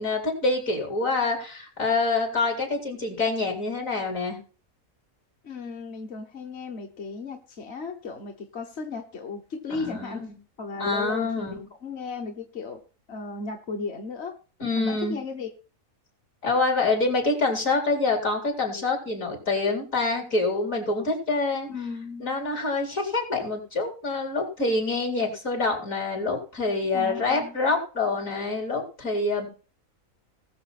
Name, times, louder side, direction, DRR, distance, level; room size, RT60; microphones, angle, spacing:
voice 1, 0.0-4.4 9.7-10.4 10.8-11.6 14.6-15.2 16.4-21.7 22.2-29.5, left 3 dB, 70° left, 1 dB, 4.4 m, -26 dB
voice 2, 5.4-10.3 10.6-12.8 13.1-14.4 14.8-15.5 21.7-22.3 26.9-27.5, left 4 dB, 50° left, 3 dB, 1.4 m, -35 dB
19.5 x 7.1 x 4.2 m, 0.38 s
omnidirectional pair, 1.5 m